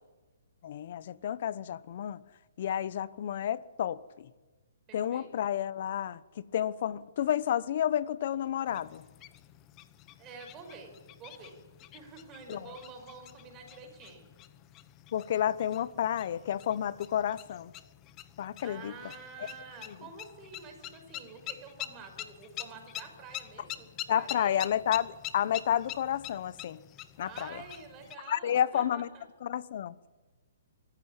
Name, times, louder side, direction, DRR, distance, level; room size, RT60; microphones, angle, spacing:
voice 1, 0.6-2.2 2.6-4.3 4.9-6.2 6.5-9.0 12.5-12.6 15.1-17.7 18.4-18.9 24.1-25.1 25.3-26.8 27.2-27.5 28.3-29.1 29.4-29.9, left 10 dB, 50° left, 0.9 m, -30 dB
voice 2, 4.9-5.3 10.2-10.9 11.2-11.6 11.9-14.3 18.6-24.7 27.2-29.3, right 5 dB, 20° right, 5.9 m, -48 dB
sound 1, 8.7-28.2, left 13 dB, 25° left, 1.0 m, -46 dB
24.0 x 15.0 x 9.9 m
hypercardioid pair, 155°, 0 cm